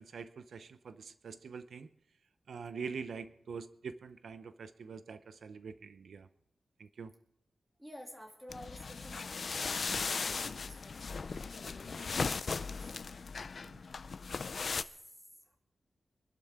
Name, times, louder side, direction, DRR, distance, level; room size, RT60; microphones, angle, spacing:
voice 1, 0.0-1.9 2.5-6.3 6.8-7.1 13.4-13.8, right 5 dB, 80° right, 11 dB, 0.6 m, -45 dB
voice 2, 7.8-13.0 13.9-14.1 14.5-15.1, equal, 5° right, 1 dB, 2.7 m, -53 dB
sound 1, 8.5-14.8, left 4 dB, 50° left, 0.5 m, -37 dB
25.5 x 12.0 x 3.6 m, 0.81 s
wide cardioid pair, 160°, 0 cm